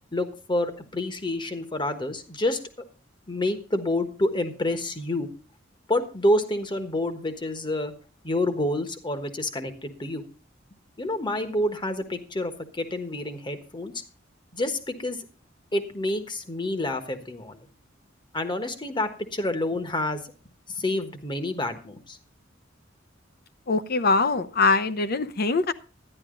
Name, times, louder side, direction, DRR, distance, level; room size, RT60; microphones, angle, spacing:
voice 1, 0.1-2.6 3.3-5.3 5.9-7.9 8.2-10.2 11.0-13.9 14.5-15.2 15.7-17.6 18.3-20.2 20.7-22.2, left 1 dB, 25° left, 1.3 m, -28 dB
voice 2, 23.7-25.7, left 3 dB, 50° left, 0.8 m, -23 dB
12.0 x 10.5 x 3.8 m
head